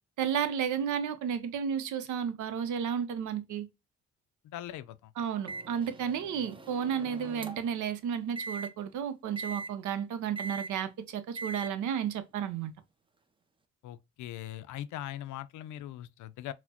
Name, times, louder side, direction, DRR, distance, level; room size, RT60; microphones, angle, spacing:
voice 1, 0.2-3.7 5.2-12.7, right 8 dB, 75° right, 0.7 m, -32 dB
voice 2, 4.4-5.1 13.8-16.5, left 12 dB, 75° left, 0.4 m, -41 dB
Microwave oven, 5.5-7.8 8.4-8.7 9.4-9.7 10.4-10.7 11.4-11.7, right 3 dB, 15° right, 0.5 m, -41 dB
4.1 x 2.1 x 2.8 m
cardioid pair, 90°, 30 cm